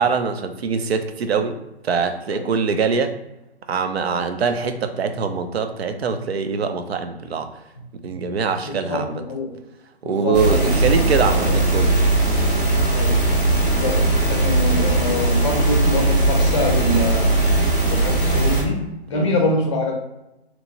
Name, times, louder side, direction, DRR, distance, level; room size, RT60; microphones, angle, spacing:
voice 1, 0.0-1.6 1.8-3.1 3.7-7.5 8.0-9.2 10.0-12.0 19.1-19.3, right 5 dB, 70° right, 8 dB, 0.5 m, -23 dB
voice 2, 8.6-9.5 10.0-11.6 12.9-13.1 13.6-14.0 14.3-17.3 17.9-18.8 19.1-19.9, left 2 dB, 30° left, 1 dB, 0.6 m, -25 dB
sound 1, 10.3-18.6, right 2 dB, 20° right, 0.5 m, -19 dB
2.9 x 2.1 x 2.7 m, 0.93 s
hypercardioid pair, 150°, 33 cm